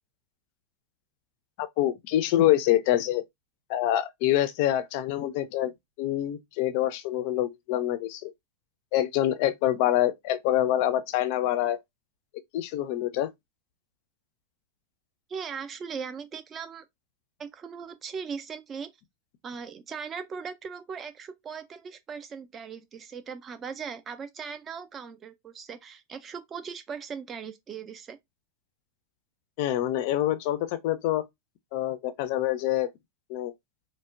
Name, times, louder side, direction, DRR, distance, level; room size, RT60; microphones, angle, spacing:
voice 1, 1.6-3.2 3.7-5.7 6.0-8.3 8.9-11.8 12.5-13.3 29.6-31.2 31.7-32.9 33.3-33.5, left 13 dB, 45° left, 0.4 m, -26 dB
voice 2, 15.3-16.9 17.4-18.9 19.4-28.2, right 6 dB, 25° right, 0.4 m, -39 dB
4.2 x 2.0 x 2.3 m
figure-of-eight pair, 90°, 0 cm